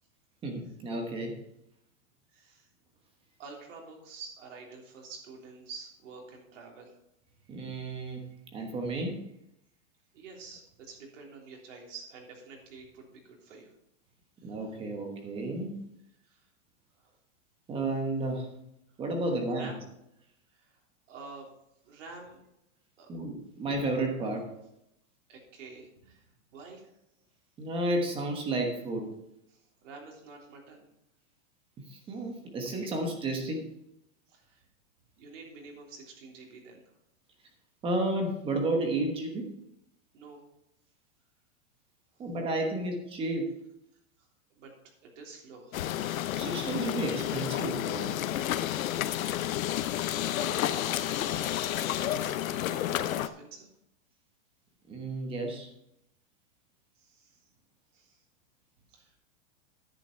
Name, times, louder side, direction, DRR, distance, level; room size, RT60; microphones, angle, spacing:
voice 1, 0.4-1.4 7.5-8.2 8.5-9.2 14.4-15.7 17.7-18.5 19.0-19.7 23.1-24.4 27.6-29.1 31.9-33.6 37.8-39.5 42.2-43.5 46.3-48.1 54.9-55.7, right 2 dB, 15° right, 3 dB, 1.2 m, -32 dB
voice 2, 2.3-2.7 3.4-6.9 10.1-13.7 14.4-14.6 16.2-16.5 17.0-17.2 19.6-19.8 20.5-20.8 21.1-21.5 21.8-22.4 23.0-23.1 25.3-26.9 29.5-30.9 34.3-34.6 35.2-36.9 40.1-40.5 42.1-42.3 44.2-44.7 45.0-45.9 51.0-51.4 51.8-53.7 57.0-57.4 57.9-58.2 58.9-59.2, right 4 dB, 65° right, 0 dB, 3.5 m, -49 dB
sound 1, 45.7-53.3, left 12 dB, 85° left, 0.8 m, -31 dB
10.5 x 8.3 x 4.4 m, 0.80 s
supercardioid pair, 170°, 40 cm